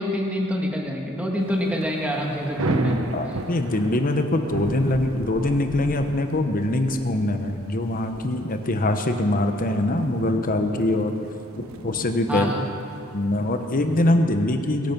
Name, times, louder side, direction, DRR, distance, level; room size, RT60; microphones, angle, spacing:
voice 1, 0.0-3.1 12.3-12.6, equal, 5° right, -1 dB, 1.7 m, -26 dB
Thunder / Rain, 1.5-14.1, right 2 dB, 70° right, 1.0 m, -36 dB
voice 2, 3.1-11.2 11.8-12.5 13.1-14.9, left 1 dB, 40° left, 6 dB, 1.0 m, -23 dB
22.5 x 8.8 x 6.1 m, 2.7 s
head